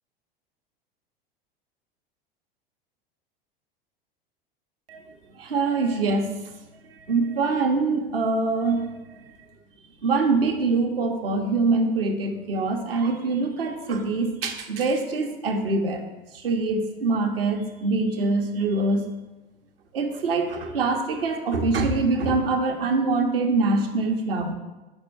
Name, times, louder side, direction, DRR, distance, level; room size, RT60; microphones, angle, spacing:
voice 1, 5.4-6.3 7.1-9.2 10.0-16.0 16.3-19.0 19.9-24.5, right 3 dB, 75° right, 3 dB, 0.9 m, -24 dB
5.9 x 4.4 x 4.5 m, 1.1 s
figure-of-eight pair, 85°, 29 cm